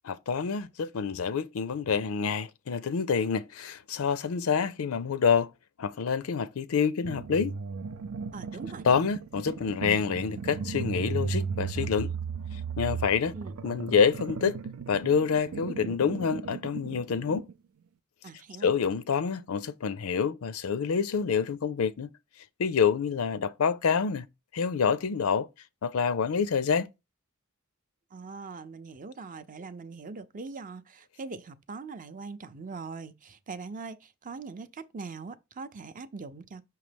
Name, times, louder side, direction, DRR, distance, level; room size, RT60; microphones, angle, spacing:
voice 1, 0.0-5.5 5.8-7.6 8.8-12.1 12.8-13.3 13.6-14.6 14.9-17.5 18.6-22.1 22.6-24.3 24.5-25.5 25.8-26.9, left 6 dB, 75° left, 0.5 m, -27 dB
sound 1, 7.0-17.5, right 5 dB, 85° right, 0.5 m, -36 dB
voice 2, 8.3-8.9 13.3-13.6 18.2-18.7 28.1-36.7, right 4 dB, 40° right, 0.5 m, -41 dB
5.8 x 3.2 x 5.1 m
head